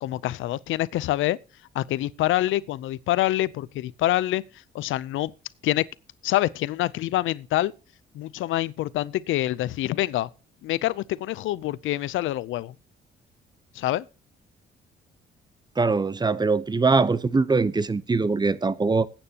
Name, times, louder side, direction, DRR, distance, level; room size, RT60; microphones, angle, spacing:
voice 1, 0.0-1.4 1.7-4.4 4.7-5.3 5.6-5.9 6.2-7.7 8.1-10.3 10.6-12.7 13.7-14.1, left 15 dB, 80° left, 0.5 m, -26 dB
voice 2, 15.8-19.1, right 4 dB, 20° right, 0.7 m, -22 dB
20.0 x 8.8 x 2.8 m
cardioid pair, 90°, 20 cm